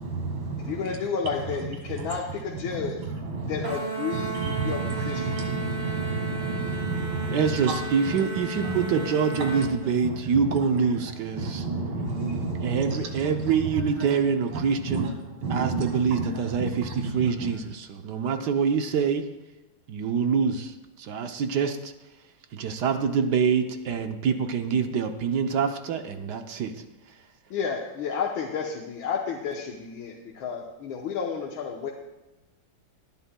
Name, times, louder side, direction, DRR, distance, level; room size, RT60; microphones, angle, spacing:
voice 1, 0.0-0.9 3.2-3.8 4.1-7.4 8.6-8.7 10.0-10.1 11.4-13.0 14.5-14.6 14.9-15.1 15.4-16.3 16.6-16.7 17.0-17.3, right 3 dB, 85° right, 3 dB, 2.6 m, -30 dB
voice 2, 0.6-3.0 3.5-5.3 27.5-31.9, left 6 dB, 80° left, -1 dB, 1.7 m, -31 dB
sound 1, 3.6-9.7, right 3 dB, 25° right, 2.3 m, -34 dB
voice 3, 7.3-11.7 12.6-15.1 15.5-19.2 19.9-21.9 22.5-26.8, right 6 dB, 65° right, 7 dB, 1.2 m, -25 dB
19.0 x 10.5 x 2.2 m, 1.1 s
omnidirectional pair, 2.2 m